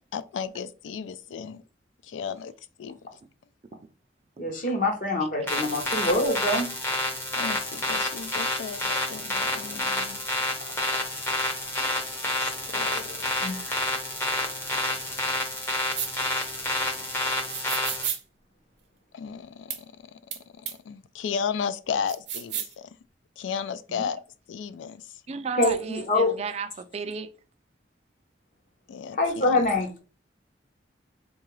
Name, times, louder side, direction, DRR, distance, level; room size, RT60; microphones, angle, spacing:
voice 1, 0.1-1.6 2.0-2.5 2.8-2.9 7.4-10.2 12.4-13.6 19.1-19.8 20.5-22.9 23.4-24.2 24.5-25.0 28.9-29.8, left 6 dB, 80° left, 0.3 m, -34 dB
voice 2, 4.4-6.7 13.4-13.8 25.6-26.3 29.2-30.0, left 2 dB, 45° left, 0.7 m, -25 dB
sound 1, 5.5-18.1, left 1 dB, 15° left, 0.6 m, -29 dB
sound 2, 15.9-16.1 17.5-18.2 19.7-19.8 20.3-20.4 20.6-20.7 22.1-22.7, right 9 dB, 60° right, 0.7 m, -31 dB
voice 3, 25.3-27.3, right 5 dB, 35° right, 0.3 m, -33 dB
3.8 x 2.3 x 3.1 m
head